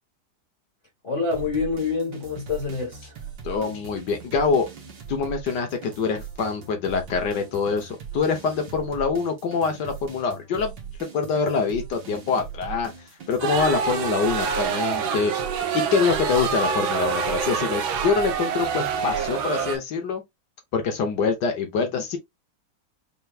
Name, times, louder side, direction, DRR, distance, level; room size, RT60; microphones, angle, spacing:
voice 1, 1.0-3.1, left 4 dB, 40° left, 1.6 m, -27 dB
sound 1, 1.3-19.8, right 7 dB, 60° right, 1.8 m, -40 dB
voice 2, 3.4-4.7 5.1-10.7 11.1-12.9 13.3-15.3 15.7-20.2 20.7-22.2, left 5 dB, 65° left, 1.5 m, -25 dB
sound 2, 13.4-19.8, right 6 dB, 85° right, 1.6 m, -26 dB
5.6 x 3.1 x 2.3 m
omnidirectional pair, 2.2 m